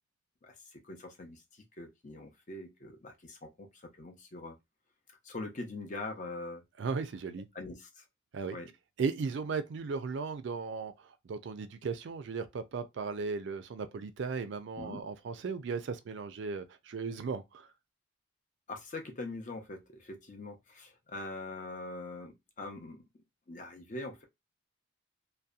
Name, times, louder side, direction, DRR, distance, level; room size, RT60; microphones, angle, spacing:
voice 1, 0.4-4.6 5.2-6.6 7.5-8.0 8.5-8.7 14.8-15.0 18.7-23.0 23.5-24.2, left 2 dB, 40° left, 0.6 m, -43 dB
voice 2, 6.8-7.5 8.3-8.6 9.0-10.9 11.3-17.7, right 5 dB, 60° right, 0.3 m, -36 dB
2.7 x 2.1 x 2.3 m
head